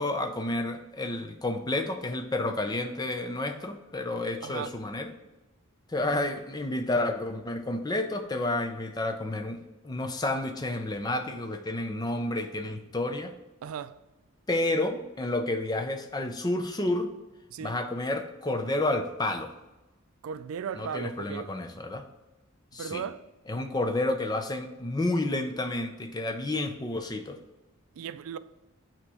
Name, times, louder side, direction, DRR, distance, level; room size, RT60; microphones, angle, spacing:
voice 1, 0.0-5.1 5.9-13.3 14.5-17.1 17.6-19.5 20.8-22.0 22.7-23.0 23.5-27.4, left 2 dB, 20° left, 0.5 m, -30 dB
voice 2, 4.4-4.7 13.6-14.0 17.5-17.8 20.2-21.5 22.8-23.2 28.0-28.4, right 7 dB, 85° right, 0.3 m, -36 dB
8.5 x 3.0 x 4.8 m
head